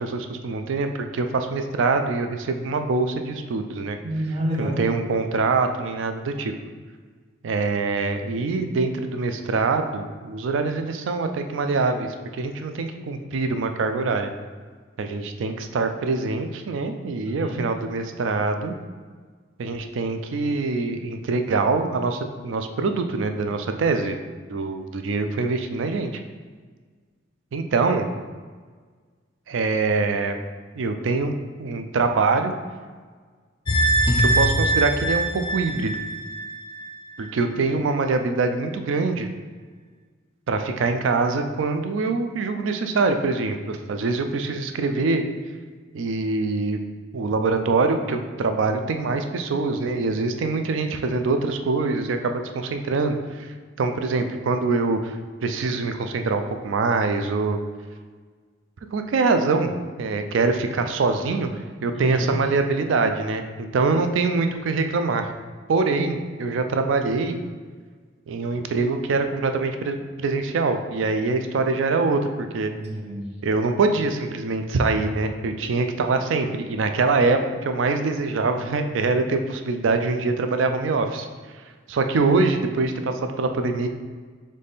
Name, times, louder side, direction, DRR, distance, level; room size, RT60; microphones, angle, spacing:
voice 1, 0.0-4.0 4.6-6.5 7.4-12.1 12.4-14.3 15.0-18.7 19.6-24.2 24.5-26.1 27.5-28.1 29.5-30.4 30.8-31.3 31.6-32.5 34.2-36.0 37.2-39.3 40.5-45.2 45.9-46.8 47.1-53.5 53.8-55.2 55.4-57.6 58.9-65.3 65.7-67.4 68.3-72.7 73.4-81.3 81.9-83.9, right 3 dB, 80° right, 7 dB, 0.4 m, -24 dB
voice 2, 4.0-4.8 17.2-17.7 61.9-62.4 72.7-73.3, equal, 35° right, -2 dB, 0.8 m, -28 dB
sound 1, 33.7-36.9 37.2-37.3, right 1 dB, 25° left, 0.4 m, -22 dB
4.0 x 3.2 x 3.5 m, 1.5 s
head